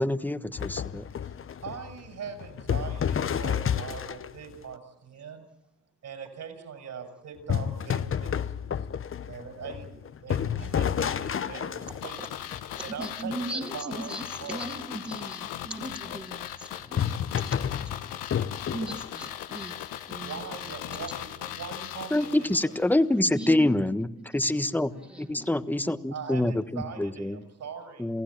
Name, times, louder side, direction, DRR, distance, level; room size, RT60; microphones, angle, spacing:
voice 1, 0.0-1.1 22.1-24.1 24.3-24.9 25.2-27.4 28.0-28.2, left 1 dB, 5° left, 1.3 m, -26 dB
sound 1, 0.6-4.5 7.5-13.2 16.9-19.1, left 8 dB, 40° left, 0.9 m, -30 dB
voice 2, 1.6-5.5 6.0-8.8 9.2-12.2 12.9-14.6 20.2-22.7 26.1-28.1, right 6 dB, 55° right, 6.7 m, -41 dB
voice 3, 10.5-10.8 11.8-18.3 18.7-21.0 21.4-21.5 22.4-22.8 23.1-23.9 24.1-24.6 24.9-25.6 26.2-26.4, right 1 dB, 15° right, 2.3 m, -40 dB
sound 2, 12.0-23.0 23.2-23.3, left 12 dB, 80° left, 1.4 m, -38 dB
28.5 x 16.0 x 8.8 m
supercardioid pair, 70°, 33 cm